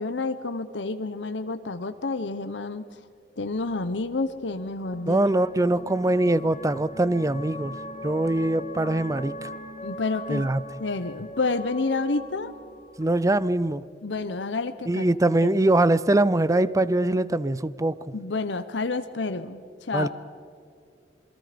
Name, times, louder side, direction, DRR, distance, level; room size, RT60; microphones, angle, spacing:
voice 1, 0.0-2.9 3.4-5.2 9.8-10.5 10.8-12.5 14.0-15.1 15.4-15.5 18.1-20.1, left 3 dB, 75° left, 10 dB, 0.9 m, -29 dB
sound 1, 3.5-13.8, left 1 dB, 45° left, 3.1 m, -41 dB
voice 2, 5.1-7.8 8.0-9.5 10.3-10.6 13.0-13.8 14.9-18.0 19.9-20.1, right 2 dB, 20° right, 17 dB, 0.5 m, -22 dB
27.5 x 22.5 x 5.1 m, 2.3 s
head